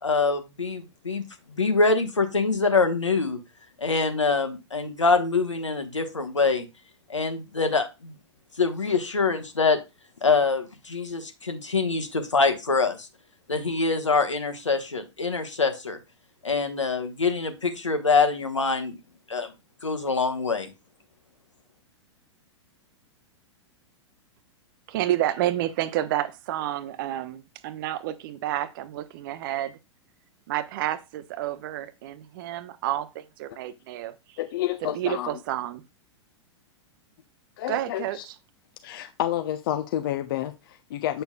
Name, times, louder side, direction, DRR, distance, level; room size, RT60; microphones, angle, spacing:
voice 1, 0.0-1.2 1.6-3.4 3.8-6.7 7.1-8.1 8.6-9.8 10.2-13.1 13.5-16.0 16.4-19.0 19.3-19.5 19.8-20.7, left 4 dB, 80° left, 1.3 m, -24 dB
voice 2, 24.9-29.8 30.5-34.4 34.8-35.8 37.7-38.3, right 13 dB, 45° right, 0.7 m, -30 dB
voice 3, 34.4-35.4 37.6-38.2 38.8-41.2, left 12 dB, 50° left, 0.6 m, -29 dB
7.8 x 6.8 x 2.2 m
figure-of-eight pair, 100°, 16 cm